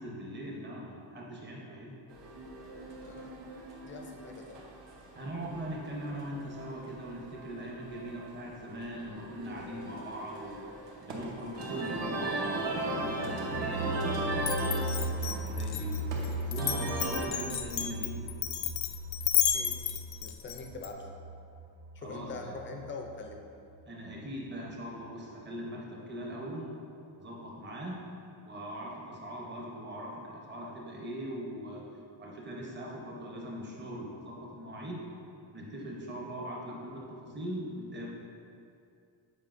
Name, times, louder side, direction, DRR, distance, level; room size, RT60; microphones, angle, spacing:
voice 1, 0.0-2.0 5.1-10.6 11.0-15.9 16.5-18.2 22.0-22.5 23.9-26.7 27.2-28.1 28.4-31.8 32.2-35.0 35.5-38.1, equal, 25° right, -3 dB, 0.7 m, -41 dB
sound 1, 2.1-17.3, right 2 dB, 65° right, 1.0 m, -38 dB
voice 2, 3.8-4.6 19.5-19.8 20.2-21.1 21.9-23.4, left 3 dB, 30° left, 2 dB, 0.4 m, -43 dB
sound 2, 12.7-23.4 23.7-23.8 24.1-24.2, right 1 dB, 90° right, 0.6 m, -38 dB
Glass, 14.4-20.9, left 10 dB, 85° left, 0.5 m, -32 dB
8.2 x 4.6 x 2.5 m, 2.5 s
cardioid pair, 180°, 45 cm